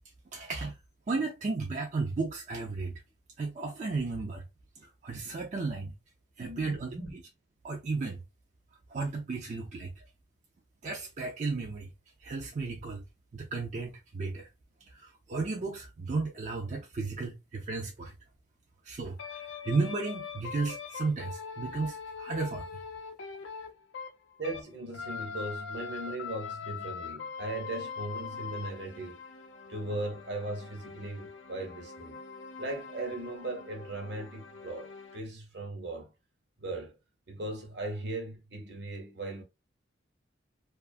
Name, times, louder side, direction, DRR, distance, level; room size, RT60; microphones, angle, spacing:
voice 1, 0.3-0.8 1.1-3.0 3.4-4.4 4.8-5.9 6.4-6.9 7.6-8.2 8.9-9.9 10.8-11.9 12.2-13.0 13.3-14.5 14.9-18.1 18.8-22.7, right 3 dB, 40° right, 0.4 m, -34 dB
voice 2, 6.4-7.1 24.4-29.2 29.7-32.2 32.6-36.1 36.6-37.0 37.3-39.4, right 2 dB, 65° right, 0.8 m, -38 dB
sound 1, 19.2-24.7 24.9-35.2, left 5 dB, 85° left, 0.5 m, -42 dB
2.4 x 2.3 x 2.3 m
head